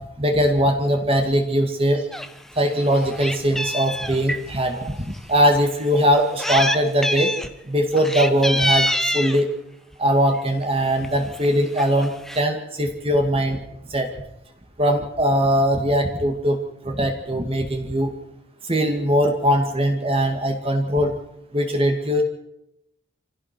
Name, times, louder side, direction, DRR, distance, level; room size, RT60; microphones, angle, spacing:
voice 1, 0.2-2.0 2.6-5.0 5.3-7.3 7.7-8.9 9.1-9.5 10.0-13.6 13.9-14.1 14.8-16.6 16.8-18.1 18.7-21.1 21.5-22.2, equal, 30° right, 4 dB, 2.2 m, -20 dB
Meow, 2.1-2.3 2.7-4.4 5.1-5.2 6.1-6.8 7.0-7.5 7.9-9.4 10.4-10.6 11.0-11.1 11.3-11.5 11.8-12.4, equal, ahead, 1.0 m, -25 dB
26.5 x 16.0 x 6.2 m, 0.83 s
head